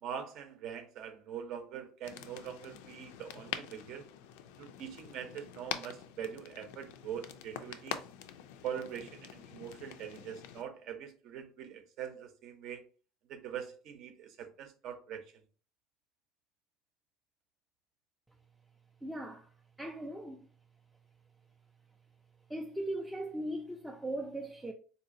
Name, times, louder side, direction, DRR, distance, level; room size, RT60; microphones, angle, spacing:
voice 1, 0.0-4.1 4.6-8.0 8.6-12.8 13.3-15.2, right 8 dB, 55° right, 0.7 m, -43 dB
sound 1, 2.0-10.6, left 10 dB, 85° left, 0.3 m, -45 dB
voice 2, 19.0-20.5 22.5-24.7, right 1 dB, 5° right, 0.3 m, -39 dB
3.8 x 2.7 x 2.6 m
cardioid pair, 125°, 0 cm